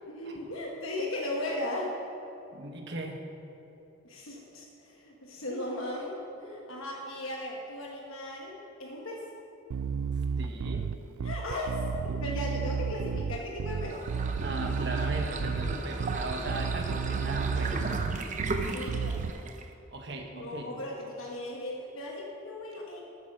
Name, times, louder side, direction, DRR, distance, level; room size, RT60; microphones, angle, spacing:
voice 1, 0.1-2.0 4.0-9.3 11.2-11.8 12.2-14.0 18.7-19.2 20.3-23.0, left 1 dB, 70° left, -1 dB, 1.2 m, -37 dB
voice 2, 2.5-3.3 10.4-10.9 14.4-17.7 19.9-20.7, right 2 dB, 50° right, 2 dB, 1.3 m, -38 dB
Bass guitar, 9.7-19.3, right 6 dB, 80° right, 0.3 m, -32 dB
sound 1, 13.7-19.7, right 2 dB, 35° right, 0.7 m, -35 dB
13.0 x 7.3 x 6.1 m, 2.9 s
head